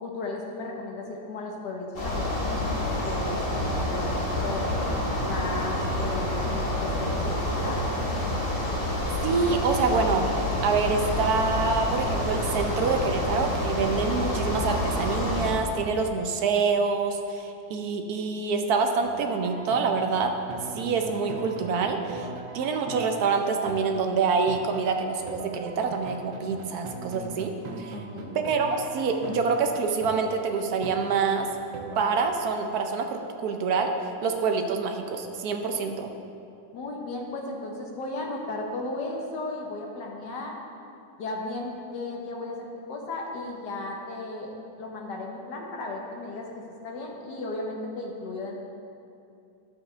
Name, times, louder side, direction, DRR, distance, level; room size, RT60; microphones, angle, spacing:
voice 1, 0.0-4.1 4.4-4.7 5.2-7.8 27.9-28.4 36.7-40.6 41.2-46.5 46.8-48.6, left 2 dB, 70° left, 0 dB, 1.7 m, -35 dB
sound 1, 1.9-15.5, left 1 dB, 30° left, 1.5 m, -28 dB
voice 2, 9.2-10.3 10.6-20.3 20.7-22.3 22.5-28.0 28.3-31.5 32.0-33.9 34.2-36.1, right 4 dB, 65° right, 5 dB, 1.1 m, -26 dB
sound 2, 19.0-32.2, right 3 dB, 85° right, 1.5 m, -40 dB
11.5 x 7.8 x 3.3 m, 2.6 s
omnidirectional pair, 2.0 m